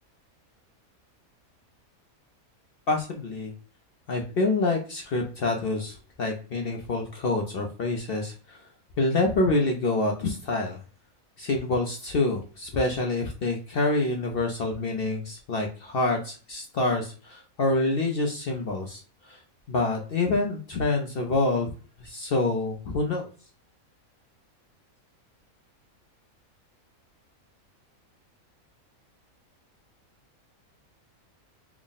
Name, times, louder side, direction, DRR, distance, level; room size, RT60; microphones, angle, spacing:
voice 1, 2.9-3.5 4.1-8.7 9.0-10.8 11.4-19.4 19.7-21.7 22.0-23.3, left 2 dB, 60° left, 2 dB, 0.6 m, -27 dB
3.5 x 2.1 x 3.8 m, 0.38 s
omnidirectional pair, 1.5 m